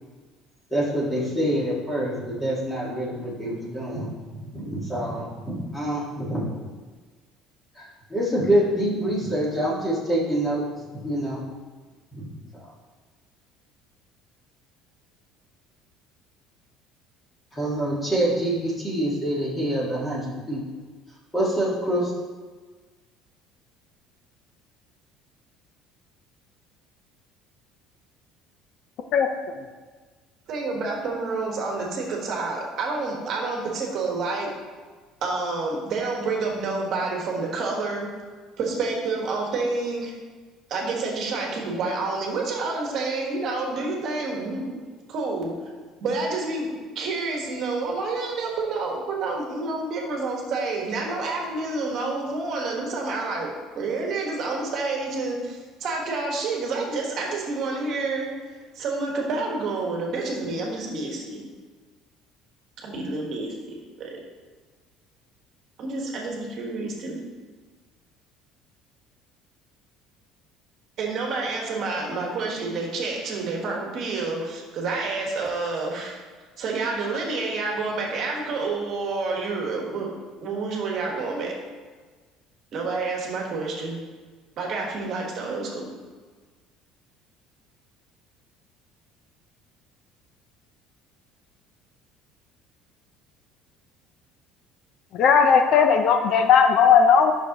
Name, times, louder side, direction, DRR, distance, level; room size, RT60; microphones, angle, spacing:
voice 1, 0.7-4.1 4.5-6.5 8.1-10.6 11.0-11.4 12.1-12.3 17.6-20.6 21.3-22.1, right 1 dB, 10° left, -5 dB, 1.6 m, -26 dB
voice 2, 30.5-34.5 35.2-38.1 38.6-40.1 40.7-44.6 45.1-45.5 46.0-46.7 46.9-53.5 53.7-58.3 58.7-61.4 62.8-64.2 65.8-67.2 71.0-76.2 76.6-80.1 80.4-81.5 82.7-84.0 84.6-85.9, right 3 dB, 40° right, -1 dB, 1.4 m, -28 dB
voice 3, 95.1-97.3, left 6 dB, 45° left, 6 dB, 0.5 m, -17 dB
10.5 x 6.2 x 2.9 m, 1.4 s
cardioid pair, 170°, 0 cm